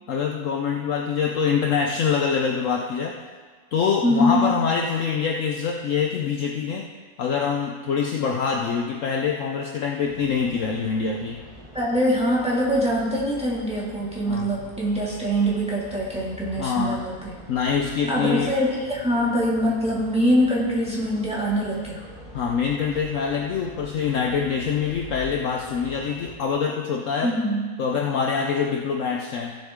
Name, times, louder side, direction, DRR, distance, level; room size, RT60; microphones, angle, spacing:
voice 1, 0.1-3.2 3.7-6.9 7.2-11.4 14.3-14.5 16.6-17.0 17.5-18.5 22.3-27.3 27.8-29.6, left 6 dB, 60° left, 2 dB, 1.0 m, -25 dB
voice 2, 4.0-4.5 11.7-17.3 18.1-22.0 27.2-27.6, equal, 5° right, -6 dB, 2.2 m, -23 dB
sound 1, 10.0-26.3, equal, 25° right, 2.7 m, -44 dB
15.5 x 7.3 x 3.7 m, 1.5 s
omnidirectional pair, 1.7 m